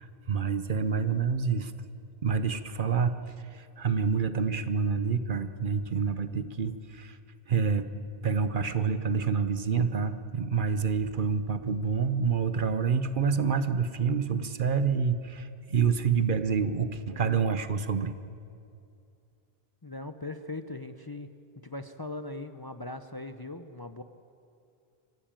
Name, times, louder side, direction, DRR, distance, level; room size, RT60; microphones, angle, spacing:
voice 1, 0.0-1.7 2.2-3.2 3.5-7.2 7.5-7.9 8.2-18.1, right 6 dB, 55° right, 12 dB, 1.0 m, -27 dB
voice 2, 19.8-21.3 21.6-24.0, left 2 dB, 25° left, 9 dB, 0.7 m, -39 dB
25.0 x 15.5 x 8.9 m, 2.6 s
omnidirectional pair, 1.1 m